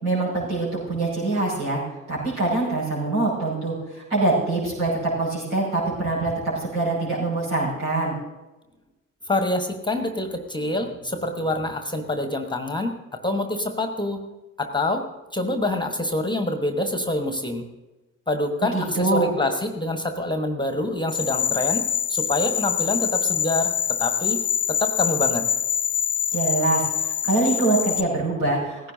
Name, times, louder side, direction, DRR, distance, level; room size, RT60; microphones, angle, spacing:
voice 1, 0.0-1.8 2.1-8.1 18.7-19.3 26.3-28.9, right 2 dB, 75° right, -7 dB, 6.0 m, -24 dB
voice 2, 9.3-14.2 14.6-15.1 15.3-17.6 18.3-24.4 24.7-25.5, left 1 dB, 10° left, 7 dB, 1.3 m, -26 dB
sound 1, 21.1-28.0, left 8 dB, 85° left, 0.6 m, -25 dB
17.5 x 15.5 x 2.7 m, 1.1 s
figure-of-eight pair, 45°, 40 cm